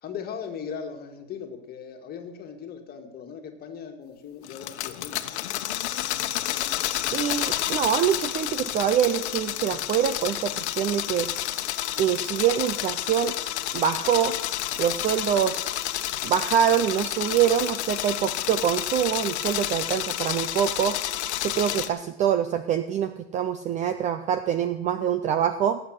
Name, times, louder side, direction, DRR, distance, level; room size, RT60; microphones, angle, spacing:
voice 1, 0.0-5.2, left 7 dB, 25° left, 4 dB, 2.0 m, -38 dB
sound 1, 4.4-21.9, left 13 dB, 75° left, 1.2 m, -30 dB
voice 2, 7.1-11.3 12.0-13.3 13.7-14.4 14.8-15.6 16.2-21.0 21.4-25.8, right 9 dB, 20° right, 11 dB, 0.4 m, -25 dB
18.0 x 8.0 x 6.5 m, 0.88 s
supercardioid pair, 145°, 34 cm